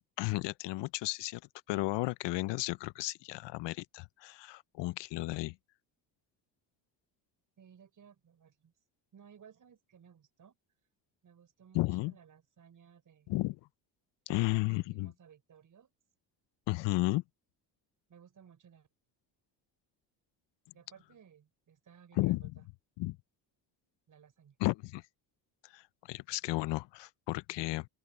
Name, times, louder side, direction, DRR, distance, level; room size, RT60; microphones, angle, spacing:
voice 1, 0.2-1.4 1.7-5.6 11.7-12.1 13.3-13.6 14.3-15.1 16.7-17.2 22.1-22.4 23.0-23.2 24.6-25.0 25.6-27.9, left 20 dB, 70° left, 0.6 m, -33 dB
voice 2, 7.6-8.7 9.1-10.6 11.2-13.4 14.3-15.9 18.1-18.9 20.7-22.7 24.1-24.6, right 8 dB, 45° right, 4.9 m, -59 dB
open air
cardioid pair, 110°, 45 cm